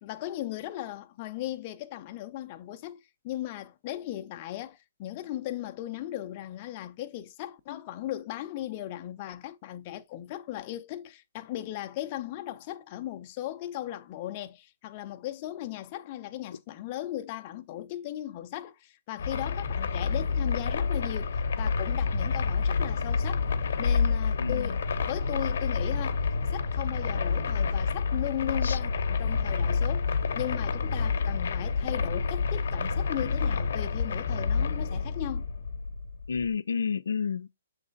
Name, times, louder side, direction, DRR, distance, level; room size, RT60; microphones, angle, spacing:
voice 1, 0.0-23.5 23.8-26.2 26.5-35.5, left 13 dB, 30° left, 0.6 m, -37 dB
sound 1, 19.2-36.5, left 4 dB, 65° left, 0.8 m, -28 dB
voice 2, 24.4-24.8 28.6-28.8 36.3-37.6, left 6 dB, 90° left, 0.5 m, -30 dB
7.4 x 3.3 x 3.9 m
hypercardioid pair, 165°, 0 cm